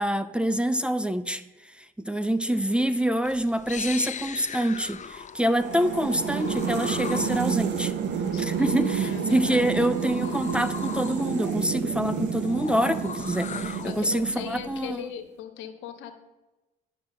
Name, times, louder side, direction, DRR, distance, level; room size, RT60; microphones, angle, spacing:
voice 1, 0.0-1.4 1.8-7.9 8.4-15.0, right 1 dB, 5° right, 11 dB, 0.6 m, -26 dB
voice 2, 2.4-3.0 8.3-9.9 13.8-16.2, left 9 dB, 75° left, 7 dB, 1.2 m, -40 dB
sound 1, 3.2-14.3, left 7 dB, 40° left, 0.7 m, -39 dB
sound 2, 5.6-15.0, right 8 dB, 65° right, 0.9 m, -30 dB
9.6 x 6.0 x 6.3 m, 1.1 s
supercardioid pair, 60°, 19 cm